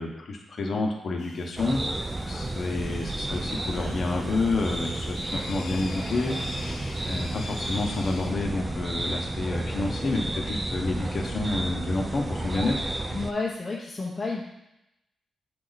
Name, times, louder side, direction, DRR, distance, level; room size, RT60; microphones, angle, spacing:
voice 1, 0.0-1.8 2.2-6.4 7.1-12.8, left 2 dB, 55° left, 1 dB, 1.1 m, -29 dB
sound 1, 1.2-8.3, left 3 dB, 80° left, 0.9 m, -44 dB
sound 2, 1.6-13.3, right 1 dB, 25° right, 0.5 m, -32 dB
voice 2, 13.1-14.5, left 3 dB, 30° left, -5 dB, 1.0 m, -31 dB
8.7 x 2.9 x 4.0 m, 0.88 s
cardioid pair, 75°, 0 cm